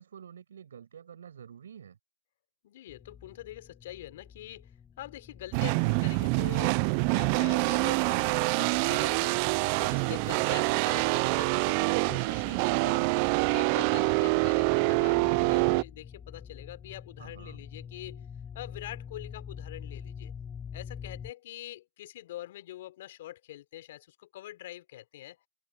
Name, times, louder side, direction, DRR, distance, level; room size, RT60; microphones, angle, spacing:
voice 1, 0.0-2.0 17.2-17.6, right 8 dB, 50° right, 7.1 m, -49 dB
voice 2, 2.6-4.7 5.0-9.4 9.8-13.1 13.5-18.3 18.5-20.3 20.7-25.4, left 14 dB, 35° left, 3.6 m, -44 dB
sound 1, 2.9-21.3, left 7 dB, 10° left, 7.4 m, -47 dB
sound 2, 5.5-15.8, right 30 dB, 25° right, 0.4 m, -26 dB
hypercardioid pair, 160°, 0 cm